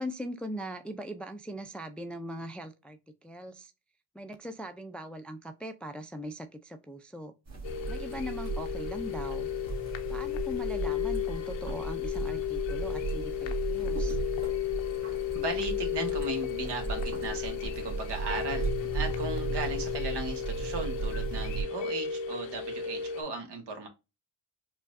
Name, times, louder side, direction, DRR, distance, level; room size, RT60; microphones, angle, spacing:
voice 1, 0.0-3.7 4.1-7.3 7.9-9.5 10.1-14.2, equal, 5° left, 0.4 m, -40 dB
sound 1, 7.5-21.6, right 4 dB, 35° right, 1.5 m, -36 dB
sound 2, 7.6-23.2, left 9 dB, 85° left, 0.6 m, -34 dB
voice 2, 15.3-23.9, right 3 dB, 65° right, 1.3 m, -37 dB
4.4 x 2.4 x 2.5 m
supercardioid pair, 65°, 44 cm